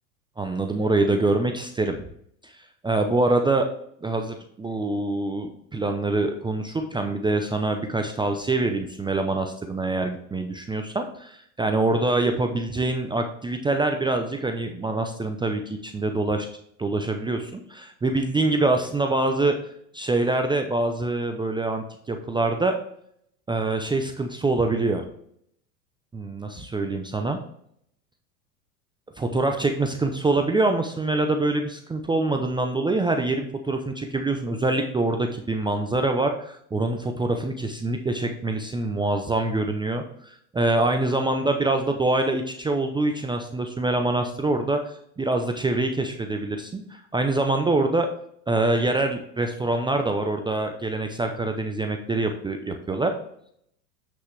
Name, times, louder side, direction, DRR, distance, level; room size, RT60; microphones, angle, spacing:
voice 1, 0.4-2.0 2.4-2.5 2.8-3.7 4.0-16.5 16.8-19.6 19.9-22.7 23.5-25.0 26.1-27.4 29.2-48.1 48.5-53.1, right 2 dB, 10° right, 5 dB, 0.6 m, -25 dB
8.1 x 6.2 x 3.2 m, 0.69 s
hypercardioid pair, 105°, 49 cm